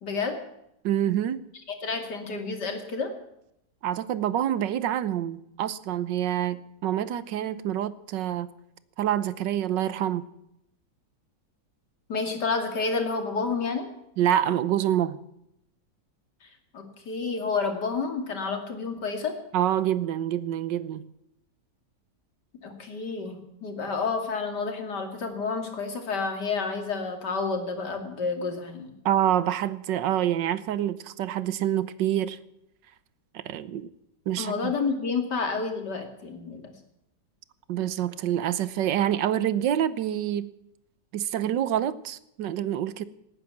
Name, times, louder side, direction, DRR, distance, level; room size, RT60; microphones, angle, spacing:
voice 1, 0.0-0.4 1.8-3.1 12.1-13.9 16.4-19.3 22.6-28.9 34.4-36.7, left 4 dB, 70° left, 3.1 m, -30 dB
voice 2, 0.8-1.5 3.8-8.5 9.0-10.3 14.2-15.2 19.5-21.1 29.0-32.4 33.3-33.9 34.3-34.8 37.7-40.5 41.1-43.0, right 11 dB, 85° right, 1.5 m, -27 dB
18.5 x 9.9 x 7.1 m
omnidirectional pair, 1.9 m